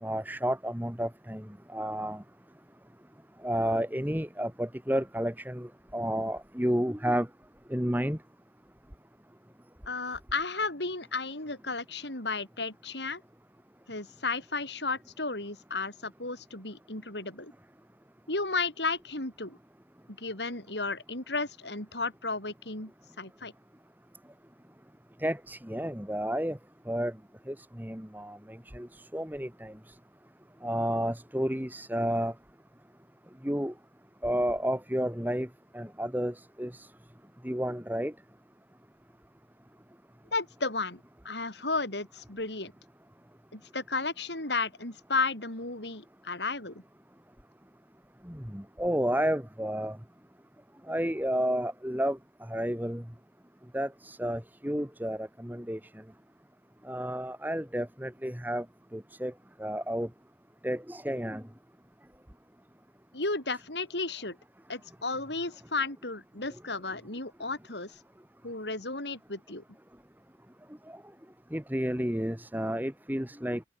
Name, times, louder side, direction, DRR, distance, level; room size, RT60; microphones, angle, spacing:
voice 1, 0.0-2.2 3.4-7.3 7.7-8.2 25.2-26.6 26.9-27.1 27.5-29.9 30.6-32.3 33.4-33.7 34.2-35.5 35.7-36.9 37.4-38.1 48.2-50.0 50.9-53.0 53.7-55.8 56.8-58.7 58.9-59.3 59.6-60.1 60.6-61.4 70.9-71.0 71.5-73.6, equal, 10° right, 2.2 m, -31 dB
voice 2, 9.9-13.2 13.9-17.5 18.3-19.6 20.2-22.9 23.2-23.5 40.3-42.7 43.5-46.8 63.1-64.4 64.7-67.9 68.4-69.6, left 3 dB, 80° left, 7.1 m, -33 dB
open air
head